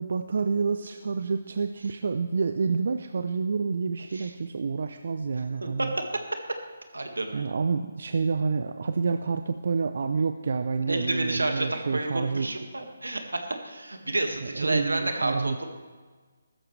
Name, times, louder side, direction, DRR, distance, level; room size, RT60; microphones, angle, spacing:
voice 1, 0.0-5.9 7.3-12.5 14.4-15.6, right 5 dB, 60° right, 8 dB, 0.6 m, -28 dB
voice 2, 5.8-6.2 6.9-7.5 10.9-15.7, right 2 dB, 90° right, 5 dB, 1.9 m, -30 dB
15.0 x 13.0 x 3.3 m, 1.4 s
figure-of-eight pair, 150°, 0 cm